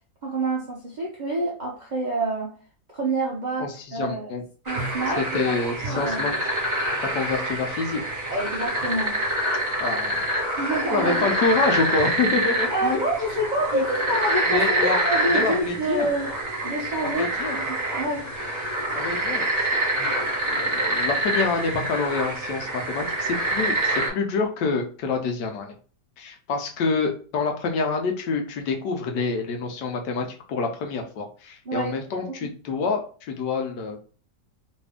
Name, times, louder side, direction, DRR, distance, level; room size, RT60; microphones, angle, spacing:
voice 1, 0.2-2.6 2.9-4.3 4.7-5.6 5.8-6.2 8.3-9.2 10.6-11.3 12.7-16.3 16.6-18.3 31.7-32.0 32.3-32.5, right 2 dB, 55° right, -3 dB, 0.5 m, -27 dB
voice 2, 3.6-4.4 5.2-6.5 7.1-8.0 9.8-10.2 10.9-13.0 13.7-13.8 14.5-15.0 15.3-16.1 17.0-17.6 18.2-18.3 19.0-19.4 19.9-25.7 26.2-34.0, left 4 dB, 80° left, 3 dB, 1.4 m, -27 dB
sound 1, 4.7-24.1, right 1 dB, 25° right, 1.5 m, -26 dB
3.3 x 2.7 x 3.4 m, 0.40 s
omnidirectional pair, 1.8 m